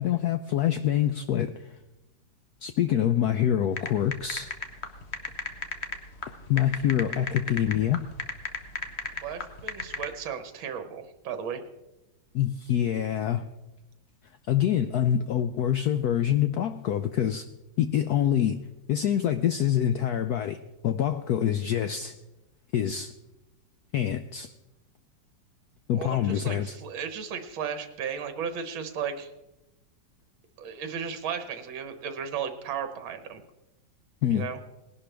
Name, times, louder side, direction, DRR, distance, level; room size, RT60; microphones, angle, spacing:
voice 1, 0.0-1.7 2.6-4.5 6.3-8.0 12.3-13.5 14.5-17.4 17.8-18.6 18.9-22.2 22.7-23.1 23.9-24.5 25.9-26.8 34.2-34.5, left 10 dB, 85° left, 0.8 m, -26 dB
sound 1, 3.8-10.1, left 5 dB, 45° left, 0.9 m, -34 dB
voice 2, 9.2-11.6 26.0-29.3 30.6-33.4 34.3-34.6, right 7 dB, 75° right, 1.8 m, -35 dB
19.5 x 11.0 x 3.4 m
omnidirectional pair, 2.2 m